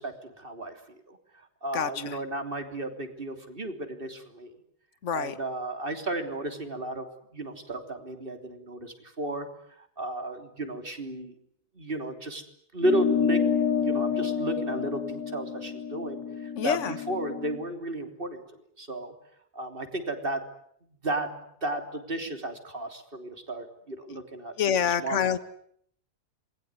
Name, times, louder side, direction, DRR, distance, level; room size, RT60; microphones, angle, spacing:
voice 1, 0.0-4.6 5.1-7.1 7.3-9.5 9.8-11.4 11.8-12.4 12.7-13.4 13.8-18.4 18.8-19.1 19.5-20.4 20.8-21.3 21.6-25.3, right 1 dB, 35° right, 6 dB, 3.5 m, -33 dB
voice 2, 1.7-2.2 5.0-5.4 16.6-17.0 24.6-25.4, left 8 dB, 50° left, 13 dB, 1.6 m, -27 dB
sound 1, 12.8-17.6, left 7 dB, 80° left, 2.5 m, -29 dB
27.5 x 21.0 x 9.7 m, 0.69 s
omnidirectional pair, 1.7 m